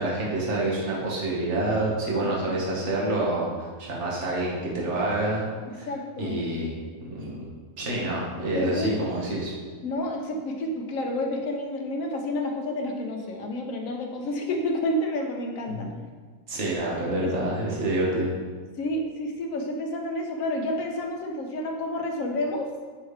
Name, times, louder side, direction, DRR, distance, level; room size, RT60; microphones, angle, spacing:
voice 1, 0.0-5.4 5.8-5.9 6.2-6.8 7.1-7.5 7.8-9.5 15.7-15.8 16.5-18.3, right 2 dB, 55° right, -5 dB, 1.6 m, -27 dB
voice 2, 2.2-2.6 5.9-6.4 8.5-9.0 9.8-15.9 17.2-17.4 18.8-22.7, left 1 dB, 70° left, 2 dB, 1.2 m, -30 dB
6.4 x 3.2 x 4.9 m, 1.5 s
omnidirectional pair, 1.5 m